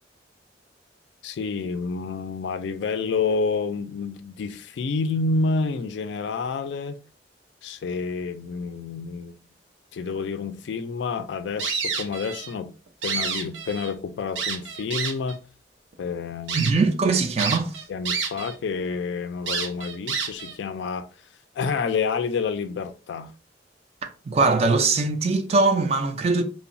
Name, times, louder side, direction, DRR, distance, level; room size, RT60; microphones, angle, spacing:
voice 1, 1.2-7.0 7.6-9.4 9.9-12.7 13.0-15.4 16.0-16.7 17.9-21.0 21.6-23.3, left 4 dB, 75° left, 0.3 m, -29 dB
sound 1, 11.6-12.5 12.9-13.9 14.4-15.3 15.9-16.0 16.5-16.7 17.4-18.5 18.8-18.9 19.5-20.6, right 5 dB, 90° right, 0.5 m, -29 dB
voice 2, 16.5-17.8 24.0-26.4, right 3 dB, 35° right, 0.3 m, -21 dB
2.9 x 2.1 x 2.5 m
head